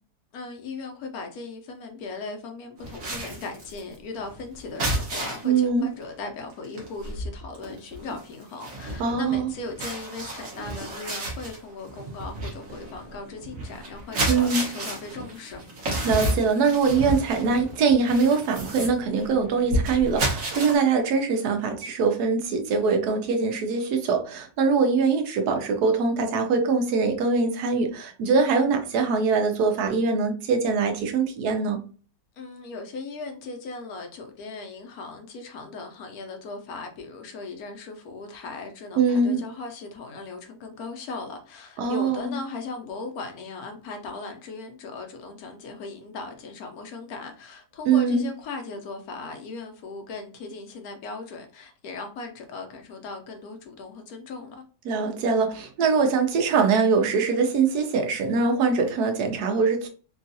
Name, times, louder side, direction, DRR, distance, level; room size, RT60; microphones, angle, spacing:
voice 1, 0.3-15.6 32.4-54.6, left 3 dB, 70° left, 1.1 m, -38 dB
sound 1, 2.8-5.6 6.0-6.2 6.5-20.8, right 1 dB, 60° right, 1.4 m, -31 dB
voice 2, 5.4-5.9 9.0-9.5 14.3-14.7 16.0-31.8 39.0-39.4 41.8-42.3 47.9-48.3 54.8-59.9, right 4 dB, 80° right, 1.2 m, -23 dB
3.6 x 2.3 x 2.6 m
omnidirectional pair, 1.7 m